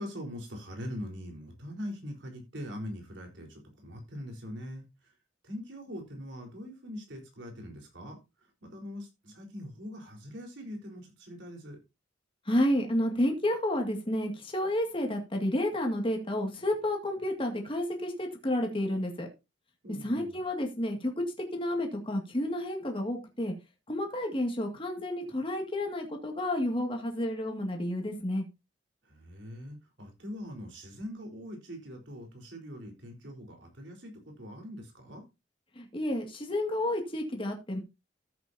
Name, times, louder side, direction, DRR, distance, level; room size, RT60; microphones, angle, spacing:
voice 1, 0.0-5.1 5.4-11.8 19.8-20.4 29.0-35.2, equal, 75° right, 2 dB, 4.1 m, -42 dB
voice 2, 12.5-19.3 20.0-21.1 21.5-23.5 23.9-28.4 35.8-37.8, left 1 dB, 30° left, 3 dB, 2.0 m, -30 dB
14.0 x 8.0 x 2.7 m, 0.25 s
head